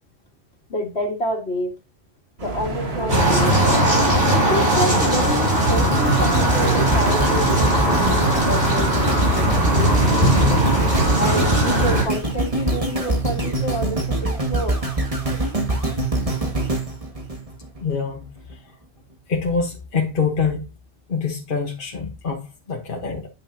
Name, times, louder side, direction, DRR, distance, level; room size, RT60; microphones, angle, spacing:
voice 1, 0.7-1.7 2.4-3.5 4.3-10.4 11.2-14.8, equal, 90° left, 2.4 m, -28 dB
sound 1, 2.4-12.0, right 2 dB, 80° right, 1.9 m, -29 dB
sound 2, 3.1-12.0, right 1 dB, 60° right, 3.7 m, -19 dB
sound 3, 5.8-18.0 18.5-18.6, right 2 dB, 35° right, 1.9 m, -24 dB
voice 2, 17.8-18.3 19.3-20.6 21.1-23.3, left 5 dB, 55° left, 1.4 m, -25 dB
9.3 x 7.4 x 2.8 m
omnidirectional pair, 1.1 m